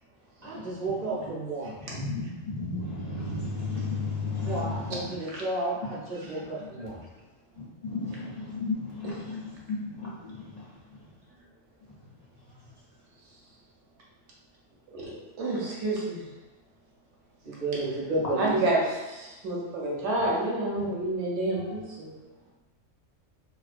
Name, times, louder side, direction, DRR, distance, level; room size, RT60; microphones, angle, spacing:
voice 1, 0.4-1.8 4.4-7.0 17.4-18.5, right 2 dB, 40° right, -7 dB, 0.6 m, -32 dB
voice 2, 1.9-5.1 7.6-10.5, left 3 dB, 65° left, -8 dB, 0.4 m, -33 dB
voice 3, 14.9-16.3 18.4-22.1, right 2 dB, 70° right, -4 dB, 0.8 m, -29 dB
2.3 x 2.1 x 2.4 m, 1.1 s
omnidirectional pair, 1.3 m